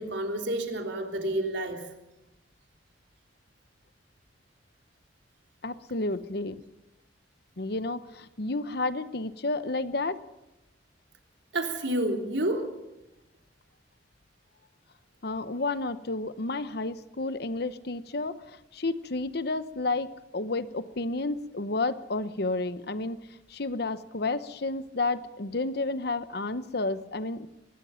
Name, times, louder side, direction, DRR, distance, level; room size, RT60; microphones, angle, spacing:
voice 1, 0.0-1.8 11.5-12.6, right 1 dB, 80° right, 3 dB, 3.5 m, -29 dB
voice 2, 5.6-6.6 7.6-10.2 15.2-23.2 23.5-27.5, left 2 dB, 60° left, 13 dB, 1.0 m, -31 dB
23.5 x 20.5 x 5.8 m, 0.93 s
head